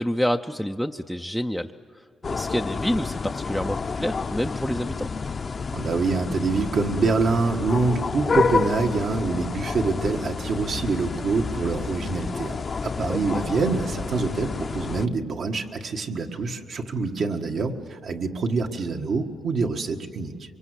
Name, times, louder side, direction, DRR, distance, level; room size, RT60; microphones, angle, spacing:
voice 1, 0.0-5.1 13.1-13.4, equal, ahead, 5 dB, 0.5 m, -28 dB
sound 1, 2.2-15.1, left 5 dB, 35° left, 0.7 m, -29 dB
voice 2, 5.7-20.3, right 4 dB, 60° right, 3 dB, 1.7 m, -25 dB
24.0 x 24.0 x 8.1 m, 2.5 s
cardioid pair, 110°, 0 cm